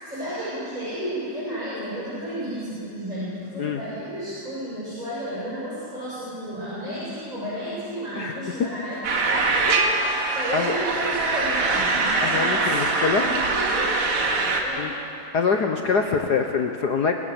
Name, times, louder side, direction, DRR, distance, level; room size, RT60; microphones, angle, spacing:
voice 1, 0.0-10.1 10.3-12.9 13.2-13.9 14.6-14.9, equal, 15° right, -11 dB, 8.0 m, -32 dB
sound 1, 9.0-14.6, right 3 dB, 85° right, 2.9 m, -23 dB
voice 2, 12.2-13.2 14.8-14.9 15.3-17.1, left 5 dB, 55° left, 4 dB, 1.4 m, -24 dB
27.0 x 17.0 x 7.1 m, 2.7 s
omnidirectional pair, 2.4 m